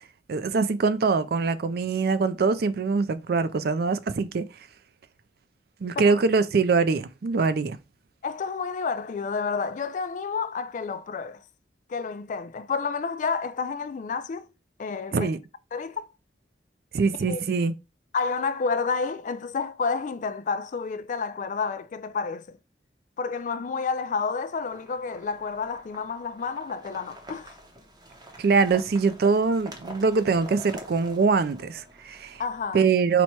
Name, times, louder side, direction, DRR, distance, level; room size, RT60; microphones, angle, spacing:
voice 1, 0.3-4.4 5.8-7.8 15.1-15.4 16.9-17.7 28.4-32.4 32.7-33.2, right 4 dB, 60° right, 0.4 m, -23 dB
voice 2, 8.2-11.4 11.9-14.5 14.8-15.3 15.7-16.1 17.3-17.4 18.1-22.6 23.2-27.6 32.4-32.8, left 5 dB, 45° left, 0.3 m, -30 dB
sound 1, 24.6-32.6, right 1 dB, 25° right, 0.8 m, -46 dB
4.2 x 2.2 x 4.4 m
head